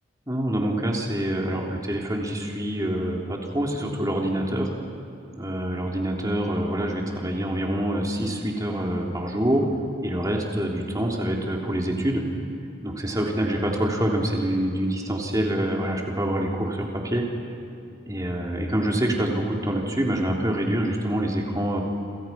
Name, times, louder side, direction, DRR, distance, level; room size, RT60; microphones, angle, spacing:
voice 1, 0.3-4.7 5.4-9.7 10.0-12.2 12.8-17.2 18.1-21.8, right 1 dB, 20° right, -1 dB, 3.5 m, -26 dB
29.0 x 27.0 x 5.9 m, 2.8 s
head